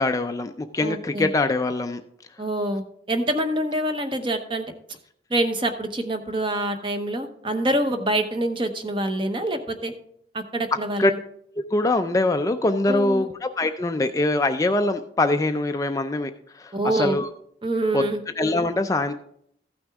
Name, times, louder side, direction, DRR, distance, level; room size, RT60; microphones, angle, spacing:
voice 1, 0.0-2.0 10.7-11.1 11.7-17.3 17.9-18.1 18.4-19.1, left 2 dB, 20° left, 7 dB, 0.4 m, -23 dB
voice 2, 0.8-1.3 2.4-4.7 5.3-9.9 10.3-11.2 12.9-13.2 16.7-17.2 17.6-18.2, right 1 dB, 30° right, 7 dB, 0.9 m, -26 dB
14.5 x 6.1 x 3.5 m, 0.70 s
head